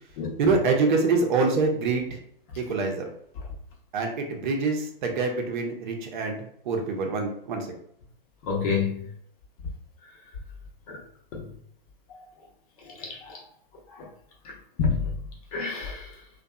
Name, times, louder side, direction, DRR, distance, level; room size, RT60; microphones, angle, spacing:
voice 1, 0.4-2.0 2.6-3.0 3.9-7.7, right 4 dB, 55° right, 2 dB, 0.7 m, -25 dB
voice 2, 8.4-9.0 10.9-11.0 11.3-11.4 13.0-13.4 14.8-15.0 15.5-16.1, left 5 dB, 40° left, 0 dB, 0.7 m, -28 dB
2.7 x 2.2 x 2.2 m, 0.67 s
hypercardioid pair, 120°, 29 cm